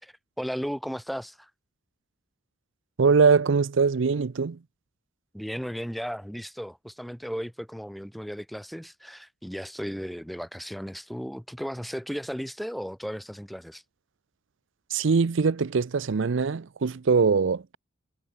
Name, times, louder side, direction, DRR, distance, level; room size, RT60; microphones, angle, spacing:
voice 1, 0.0-1.5 5.3-13.8, equal, ahead, 0.3 m, -35 dB
voice 2, 3.0-4.6 14.9-17.8, right 5 dB, 60° right, 0.5 m, -22 dB
head